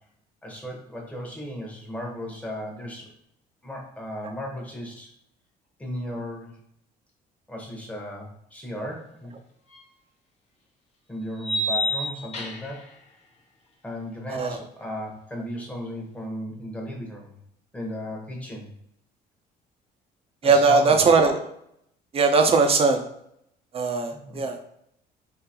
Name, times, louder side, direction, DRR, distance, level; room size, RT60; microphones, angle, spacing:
voice 1, 0.4-3.1 3.6-5.1 5.8-6.6 7.5-9.3 11.1-12.9 13.8-17.3 17.7-18.7 20.4-21.0 24.1-24.4, equal, 10° left, -1 dB, 1.0 m, -35 dB
sound 1, 9.7-9.8 11.4-12.8, equal, 40° left, 0.8 m, -28 dB
voice 2, 14.3-14.6 20.4-21.4 22.1-23.0 23.7-24.6, right 4 dB, 35° right, 5 dB, 0.5 m, -19 dB
3.8 x 2.7 x 2.8 m, 0.75 s
cardioid pair, 110°, 17 cm